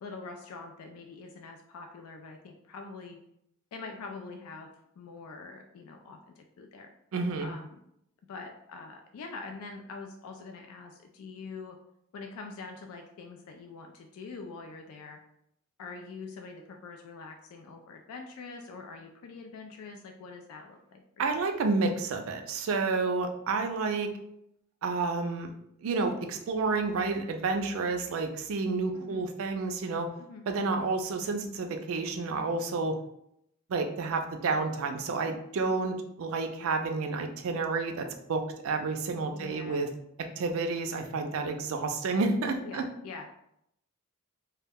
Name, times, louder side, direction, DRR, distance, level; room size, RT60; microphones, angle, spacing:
voice 1, 0.0-3.2 3.7-6.9 7.4-7.8 8.3-11.8 12.1-15.2 15.8-21.2 28.9-29.2 30.2-30.4 39.3-39.9 42.6-43.3, left 4 dB, 75° left, 3 dB, 0.3 m, -44 dB
voice 2, 7.1-7.5 21.2-24.1 24.8-25.5 25.8-30.1 30.5-33.0 33.7-39.9 40.4-42.9, right 3 dB, 65° right, 5 dB, 0.4 m, -30 dB
2.2 x 2.1 x 3.4 m, 0.76 s
head